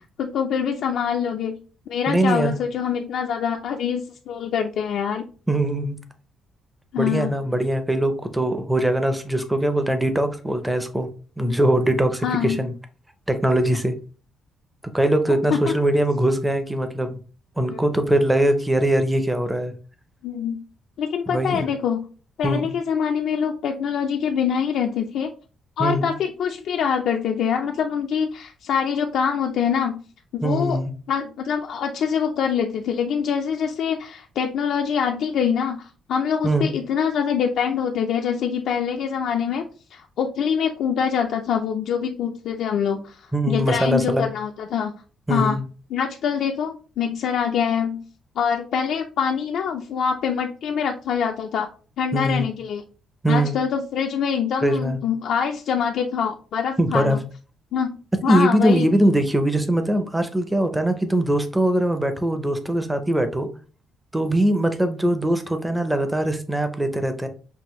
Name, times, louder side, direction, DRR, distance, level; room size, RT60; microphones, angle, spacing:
voice 1, 0.2-1.6 1.9-5.2 6.9-7.3 12.2-12.6 15.3-15.8 17.7-17.8 20.2-20.6 21.0-22.1 22.4-25.3 25.8-30.0 30.3-30.8 31.1-39.6 39.9-44.9 45.3-45.6 45.9-48.0 48.4-51.7 52.0-52.8 53.3-57.2 57.7-58.9, left 7 dB, 65° left, 2 dB, 0.4 m, -24 dB
voice 2, 2.1-2.5 5.5-6.0 7.0-11.1 11.4-12.7 13.3-14.0 14.9-17.2 17.6-19.7 21.3-21.7 22.4-22.7 25.8-26.1 30.4-30.9 36.4-36.7 43.3-44.3 45.3-45.6 52.1-52.5 53.2-53.6 54.6-55.0 56.8-57.2 58.3-63.5 64.1-67.3, right 1 dB, 5° right, 8 dB, 0.5 m, -21 dB
5.5 x 2.5 x 3.0 m, 0.38 s
cardioid pair, 165°, 0 cm